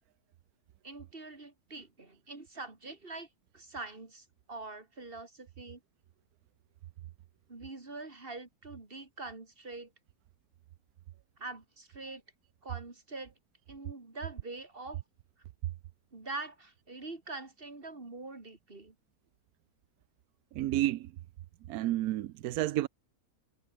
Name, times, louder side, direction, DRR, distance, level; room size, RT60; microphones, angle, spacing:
voice 1, 0.8-3.3 3.5-5.8 7.5-9.9 11.4-12.2 12.6-13.3 13.7-15.0 16.1-18.9, right 3 dB, 40° right, 3.3 m, -44 dB
voice 2, 20.5-21.1 21.7-22.9, right 14 dB, 90° right, 1.1 m, -30 dB
omnidirectional pair, 1.5 m